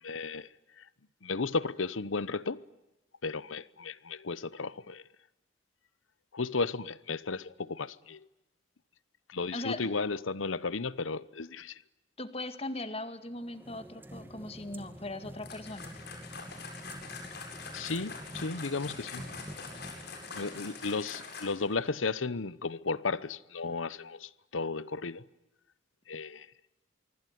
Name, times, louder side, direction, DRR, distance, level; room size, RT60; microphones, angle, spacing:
voice 1, 0.0-0.5 0.8-0.9 1.2-2.6 3.2-5.0 6.3-8.3 9.3-11.8 17.7-19.3 20.3-25.2 26.1-26.5, left 4 dB, 90° left, 0.9 m, -34 dB
voice 2, 9.5-9.8 12.2-15.9, left 2 dB, 30° left, 2.0 m, -39 dB
sound 1, 13.3-21.5, equal, 10° right, 2.2 m, -48 dB
sound 2, 15.4-21.7, left 4 dB, 55° left, 7.9 m, -44 dB
25.5 x 24.5 x 9.4 m
head